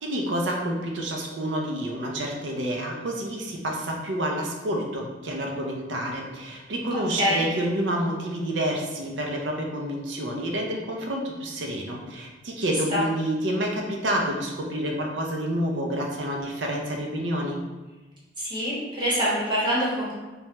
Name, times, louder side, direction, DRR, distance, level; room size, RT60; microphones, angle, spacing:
voice 1, 0.0-17.6, right 1 dB, 75° right, 1 dB, 0.5 m, -29 dB
voice 2, 7.1-7.4 12.9-13.0 18.4-20.1, equal, 25° right, -7 dB, 0.9 m, -25 dB
3.2 x 2.2 x 2.9 m, 1.2 s
head